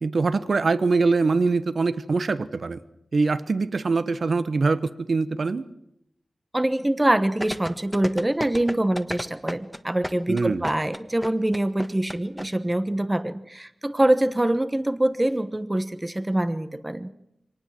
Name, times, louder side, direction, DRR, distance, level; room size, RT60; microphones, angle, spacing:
voice 1, 0.0-2.8 3.1-4.8 5.1-5.6 10.3-10.6, right 4 dB, 70° right, 14 dB, 1.0 m, -23 dB
voice 2, 6.5-17.1, right 1 dB, 20° right, 12 dB, 1.2 m, -24 dB
sound 1, 7.4-12.5 12.7-12.8, equal, ahead, 1.5 m, -32 dB
24.0 x 19.0 x 7.6 m, 0.80 s
cardioid pair, 50°, 0 cm